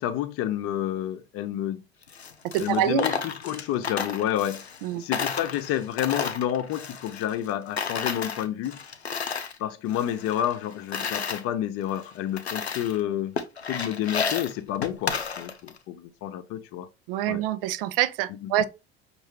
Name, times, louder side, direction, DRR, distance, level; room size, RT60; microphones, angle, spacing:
voice 1, 0.0-1.8 2.6-4.7 5.0-8.8 9.6-13.4 13.7-16.9 17.3-17.4 18.4-18.5, left 11 dB, 45° left, 0.7 m, -29 dB
Coin (dropping), 2.0-4.9 5.1-7.5 7.8-9.6 9.9-11.4 12.0-12.1 12.4-13.0 13.4-15.8, left 6 dB, 85° left, 0.6 m, -32 dB
voice 2, 2.5-3.2 4.8-5.0 17.1-18.6, right 12 dB, 60° right, 0.6 m, -26 dB
6.3 x 2.7 x 3.1 m
figure-of-eight pair, 60°, 31 cm